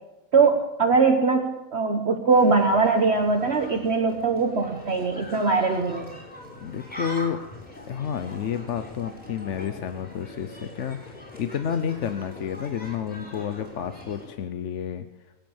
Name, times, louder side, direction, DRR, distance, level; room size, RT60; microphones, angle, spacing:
voice 1, 0.3-6.2, right 4 dB, 50° right, 3 dB, 1.4 m, -21 dB
sound 1, 2.3-14.3, left 1 dB, 5° left, 5.4 m, -42 dB
voice 2, 6.6-7.4 7.9-15.1, left 8 dB, 60° left, 9 dB, 1.0 m, -30 dB
21.5 x 9.1 x 7.1 m, 1.0 s
omnidirectional pair, 1.5 m